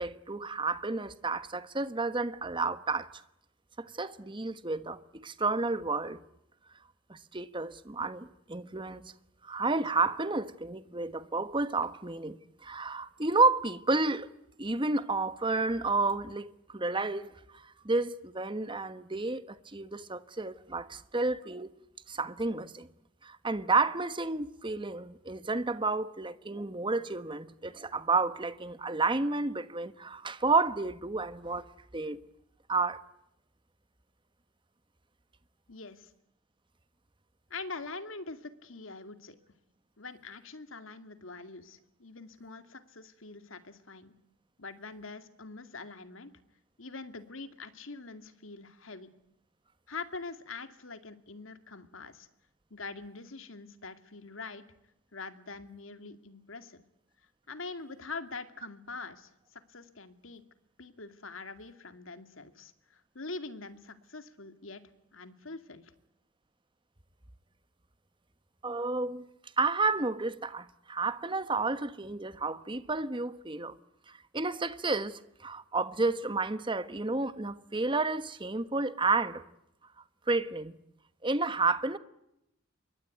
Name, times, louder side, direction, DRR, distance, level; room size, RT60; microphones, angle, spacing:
voice 1, 0.0-3.2 3.8-6.2 7.1-9.1 9.4-14.3 14.6-21.7 22.1-22.9 23.2-31.7 31.9-32.2 32.7-33.0 68.6-69.3 69.6-73.8 74.1-79.4 80.3-80.8 81.2-82.0, right 3 dB, 25° right, 1.3 m, -31 dB
voice 2, 35.7-36.1 37.5-39.4 40.0-44.1 44.6-46.3 46.8-49.1 49.9-52.3 52.7-54.6 55.1-56.8 57.5-60.4 60.8-64.8 65.1-65.9, left 3 dB, 80° left, 2.4 m, -44 dB
27.5 x 23.5 x 9.3 m
head